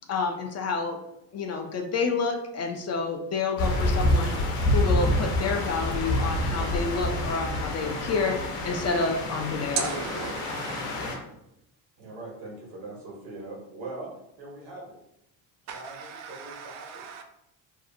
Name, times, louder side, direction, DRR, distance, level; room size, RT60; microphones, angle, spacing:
voice 1, 0.1-1.0 1.3-4.4 4.7-9.9, left 4 dB, 40° left, 4 dB, 0.4 m, -29 dB
sound 1, 3.6-11.2, left 1 dB, 75° left, 0.7 m, -27 dB
voice 2, 9.8-10.9 15.7-17.2, right 7 dB, 40° right, 4 dB, 0.4 m, -36 dB
voice 3, 12.0-14.1 14.4-15.0 15.6-17.0, right 2 dB, 85° right, -1 dB, 1.1 m, -41 dB
2.6 x 2.4 x 2.6 m, 0.82 s
cardioid pair, 105°, 44 cm